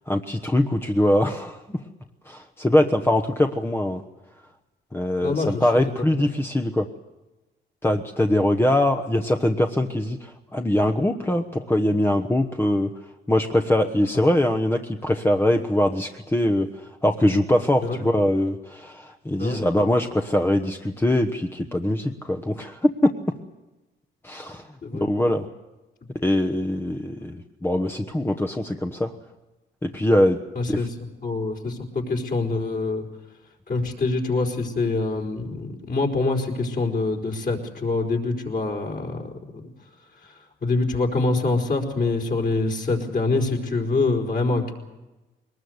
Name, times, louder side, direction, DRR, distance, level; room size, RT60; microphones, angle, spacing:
voice 1, 0.1-1.6 2.3-4.0 4.9-6.9 7.8-12.9 13.3-23.1 24.2-24.7 24.9-25.5 26.2-29.1 29.8-30.4 30.7-30.9, left 1 dB, 10° left, 5 dB, 1.2 m, -22 dB
voice 2, 5.2-5.7 6.2-6.3 17.8-18.0 19.4-19.6 24.8-25.1 30.5-30.9 31.2-33.0 33.7-39.3 40.6-44.7, left 3 dB, 45° left, 1 dB, 4.7 m, -25 dB
22.0 x 20.0 x 8.1 m, 1.1 s
cardioid pair, 90°, 20 cm